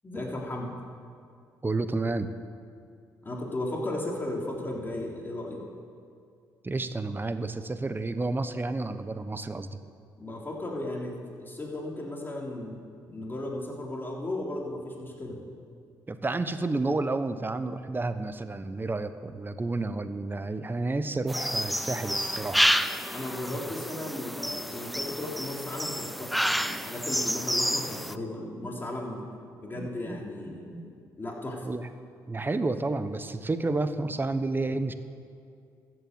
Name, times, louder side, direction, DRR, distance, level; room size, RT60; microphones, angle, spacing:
voice 1, 0.0-0.7 3.2-5.7 10.2-12.8 13.1-15.4 23.1-29.3 29.6-30.9 31.2-31.7, left 1 dB, 25° left, -2 dB, 3.5 m, -35 dB
voice 2, 1.6-2.3 6.6-9.8 16.1-22.7 29.8-30.2 30.5-30.8 31.6-31.9 32.3-34.9, right 2 dB, 25° right, 11 dB, 1.0 m, -31 dB
sound 1, 21.3-28.1, equal, ahead, 0.5 m, -29 dB
13.5 x 7.9 x 7.9 m, 2.3 s
supercardioid pair, 55°, 8 cm